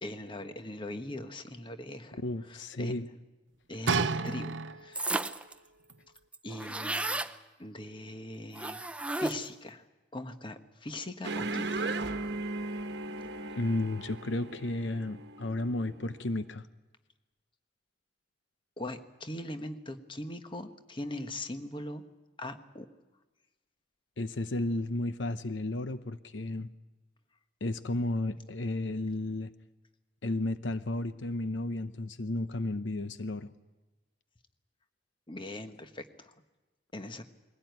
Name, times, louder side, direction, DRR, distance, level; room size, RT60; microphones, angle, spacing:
voice 1, 0.0-2.2 2.5-2.9 3.7-5.1 6.4-7.2 7.6-8.8 9.1-9.8 10.1-11.9 18.8-22.0 22.4-22.9 35.3-36.3 36.9-37.2, left 1 dB, 25° left, 8 dB, 1.3 m, -40 dB
voice 2, 2.1-3.1 13.5-16.7 24.2-26.7 27.6-29.5 30.2-33.5, left 2 dB, 80° left, 12 dB, 0.8 m, -33 dB
sound 1, 3.9-5.1 5.9-6.0, right 4 dB, 85° right, 0.8 m, -30 dB
sound 2, 4.9-5.5 5.9-6.0 6.2-7.3 8.5-9.6, right 2 dB, 5° right, 0.6 m, -33 dB
sound 3, 11.2-16.2, right 2 dB, 65° right, 1.2 m, -37 dB
21.5 x 17.0 x 9.3 m, 1.2 s
head